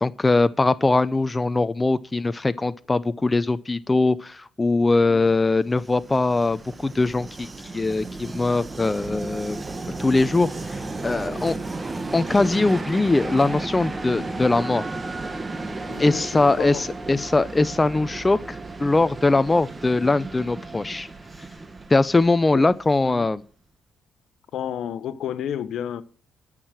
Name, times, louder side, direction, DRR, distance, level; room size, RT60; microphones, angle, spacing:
voice 1, 0.0-7.5 7.7-9.6 10.0-11.5 12.1-14.8 16.0-21.1 21.9-23.4, left 3 dB, 20° left, 0.6 m, -21 dB
Train, 5.5-23.2, right 3 dB, 25° right, 1.3 m, -34 dB
voice 2, 15.9-16.3 16.6-16.9 17.2-17.3 22.5-22.6 23.0-23.3 24.5-26.0, left 9 dB, 75° left, 0.9 m, -31 dB
12.0 x 6.4 x 7.4 m
cardioid pair, 90°, 0 cm